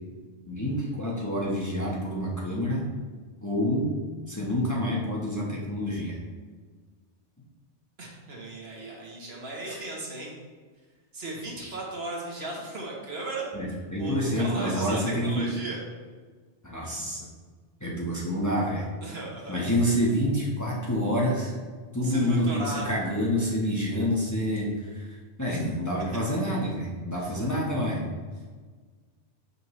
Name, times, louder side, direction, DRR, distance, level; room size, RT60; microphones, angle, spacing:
voice 1, 0.4-2.9 3.4-3.9 4.3-6.2 9.7-9.8 11.6-11.7 13.5-15.5 16.6-17.3 17.8-18.9 19.5-21.5 21.9-28.0, equal, 15° left, -5 dB, 1.1 m, -28 dB
voice 2, 8.0-10.3 11.1-13.5 14.0-15.8 19.0-19.7 22.0-23.0 25.5-25.6 27.1-27.4, right 2 dB, 60° right, -2 dB, 1.5 m, -36 dB
6.4 x 5.4 x 3.2 m, 1.5 s
omnidirectional pair, 1.2 m